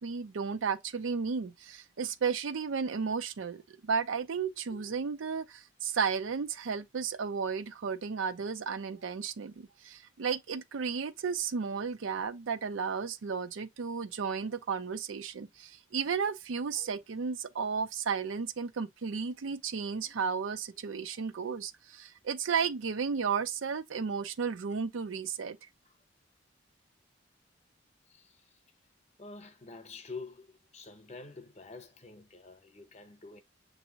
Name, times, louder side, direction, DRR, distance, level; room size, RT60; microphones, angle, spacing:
voice 1, 0.0-25.6, right 6 dB, 85° right, 0.5 m, -33 dB
voice 2, 4.7-5.1 16.7-17.0 20.0-20.1 25.9-26.0 28.1-28.6 29.2-33.4, left 3 dB, 35° left, 0.8 m, -48 dB
6.9 x 2.7 x 2.7 m
head